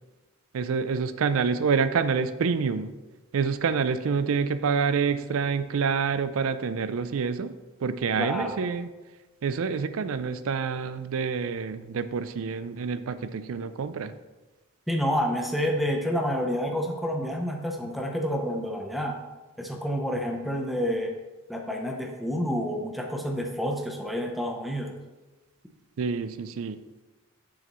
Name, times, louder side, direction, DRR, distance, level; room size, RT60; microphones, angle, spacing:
voice 1, 0.5-2.9 3.3-7.5 7.8-8.9 9.4-14.1 26.0-26.8, right 5 dB, 65° right, 12 dB, 0.4 m, -27 dB
voice 2, 8.2-8.6 14.9-19.2 19.6-21.1 21.5-24.9, equal, ahead, 2 dB, 0.6 m, -29 dB
6.8 x 6.4 x 3.0 m, 1.2 s
head